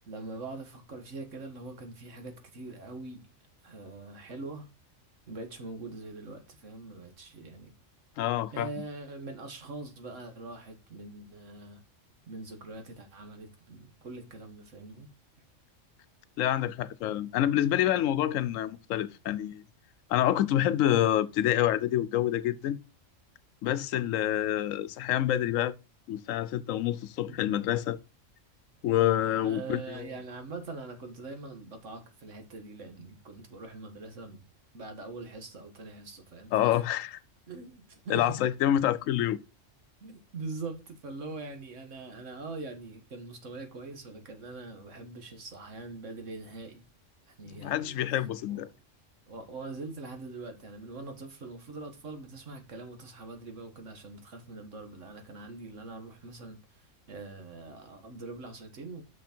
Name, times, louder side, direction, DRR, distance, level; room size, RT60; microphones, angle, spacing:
voice 1, 0.0-3.3 3.6-4.7 5.3-7.7 8.5-11.8 12.3-15.1 29.4-34.4 34.7-36.8 37.5-38.4 40.0-46.8 47.3-48.0 48.5-48.8 49.3-59.0, right 3 dB, 70° right, 1.8 m, -43 dB
voice 2, 8.2-8.7 16.4-19.6 20.1-22.8 23.6-25.7 26.1-28.0 28.8-30.1 36.5-37.2 38.1-39.4 47.5-48.7, left 12 dB, 85° left, 1.0 m, -27 dB
6.2 x 5.8 x 4.4 m
omnidirectional pair, 1.3 m